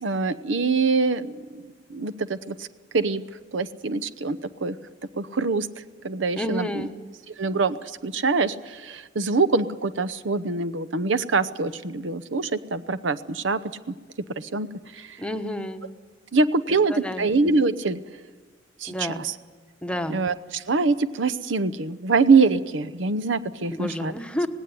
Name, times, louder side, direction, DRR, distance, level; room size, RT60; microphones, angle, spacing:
voice 1, 0.0-1.6 1.9-2.7 2.9-3.2 3.5-4.7 5.2-5.7 6.0-6.9 7.4-7.8 8.0-13.6 14.4-14.7 14.9-15.2 16.3-18.0 18.8-19.3 20.1-24.1, right 4 dB, 75° right, 14 dB, 0.8 m, -24 dB
voice 2, 6.4-6.9 15.2-15.8 16.9-17.3 18.9-19.2 19.8-20.2 23.7-24.5, left 1 dB, 5° left, 7 dB, 1.1 m, -30 dB
18.5 x 17.0 x 9.7 m, 1.4 s
head